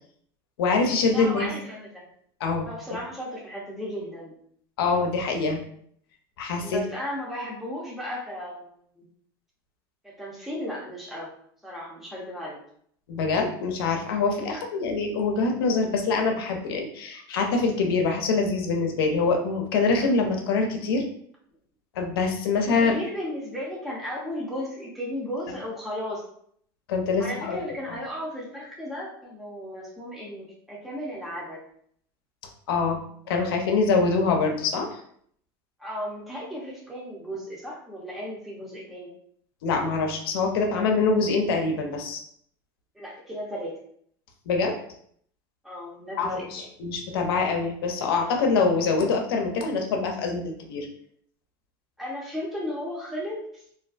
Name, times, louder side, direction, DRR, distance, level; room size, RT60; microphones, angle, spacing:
voice 1, 0.6-1.5 2.4-2.7 4.8-5.6 6.4-6.8 13.1-21.0 22.0-23.0 26.9-27.6 32.7-33.0 33.3-35.0 39.6-42.2 44.5-44.7 46.2-50.9, left 4 dB, 85° left, 3 dB, 0.6 m, -24 dB
voice 2, 1.1-2.0 2.6-4.3 6.6-9.0 10.0-11.3 11.6-12.6 14.4-14.6 22.6-26.2 27.2-31.6 35.8-39.1 42.9-43.8 45.6-46.7 52.0-53.6, equal, ahead, -5 dB, 0.7 m, -35 dB
2.4 x 2.2 x 2.4 m, 0.64 s
supercardioid pair, 105°, 12 cm